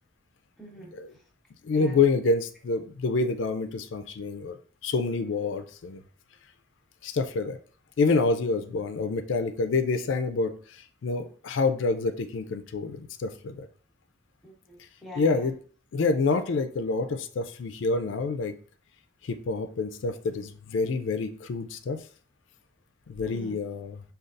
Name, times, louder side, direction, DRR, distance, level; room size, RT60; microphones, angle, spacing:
voice 1, 0.6-0.9 1.7-2.0 14.4-15.5 23.3-23.6, equal, ahead, -4 dB, 0.9 m, -44 dB
voice 2, 1.6-4.6 4.8-6.0 7.0-7.6 8.0-13.7 15.2-15.6 15.9-18.6 19.2-22.0 23.1-24.0, left 4 dB, 85° left, 8 dB, 0.4 m, -27 dB
5.2 x 2.4 x 2.5 m, 0.44 s
head